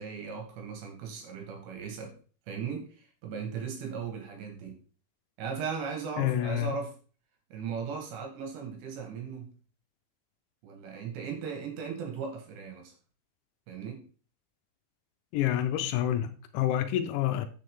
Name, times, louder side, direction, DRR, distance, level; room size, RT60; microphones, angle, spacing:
voice 1, 0.0-2.1 2.5-4.8 5.4-6.9 7.5-9.5 10.6-12.9 13.7-14.0, right 6 dB, 75° right, 3.7 m, -37 dB
voice 2, 6.2-6.7 15.3-17.5, left 11 dB, 85° left, 3.0 m, -28 dB
7.8 x 7.1 x 3.6 m
omnidirectional pair, 5.1 m